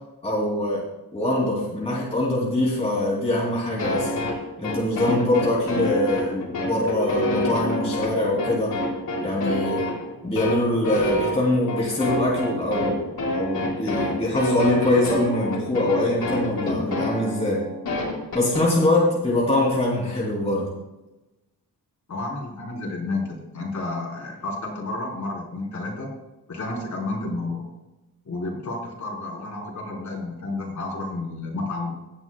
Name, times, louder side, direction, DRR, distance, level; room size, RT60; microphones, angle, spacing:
voice 1, 0.2-0.8 1.1-4.2 4.6-8.7 9.2-9.8 10.2-17.6 18.3-20.7, left 1 dB, 15° left, -5 dB, 2.7 m, -23 dB
sound 1, 3.8-18.6, left 1 dB, 65° left, 4.1 m, -27 dB
voice 2, 22.1-26.1 26.5-27.7 28.3-31.9, left 2 dB, 50° left, -2 dB, 3.7 m, -31 dB
17.0 x 10.5 x 2.2 m, 1.0 s
wide cardioid pair, 175°, 38 cm